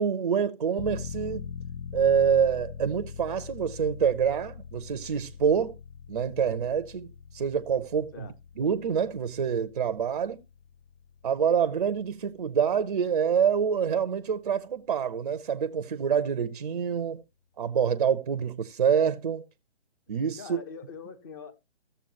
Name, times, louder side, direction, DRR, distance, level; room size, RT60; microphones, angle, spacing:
voice 1, 0.0-1.5 1.9-5.7 6.1-7.1 7.3-8.3 8.6-10.4 11.2-17.2 17.6-19.5 20.1-20.6, right 7 dB, 35° right, 0.6 m, -26 dB
sound 1, 0.8-13.3 13.6-13.7, left 7 dB, 70° left, 0.7 m, -43 dB
voice 2, 20.4-21.5, left 6 dB, 20° left, 0.8 m, -42 dB
15.5 x 7.0 x 2.8 m
figure-of-eight pair, 145°, 33 cm